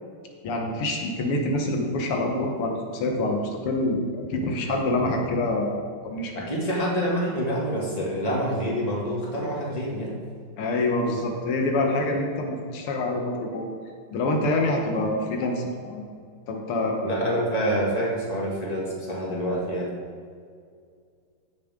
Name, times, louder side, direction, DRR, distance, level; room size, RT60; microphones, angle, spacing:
voice 1, 0.4-6.3 10.6-13.7 14.1-16.1 16.5-17.0, left 2 dB, 85° left, 1 dB, 2.1 m, -26 dB
voice 2, 6.3-10.1 17.0-19.9, equal, 20° left, -4 dB, 2.0 m, -27 dB
14.5 x 6.8 x 3.7 m, 2.1 s
omnidirectional pair, 2.4 m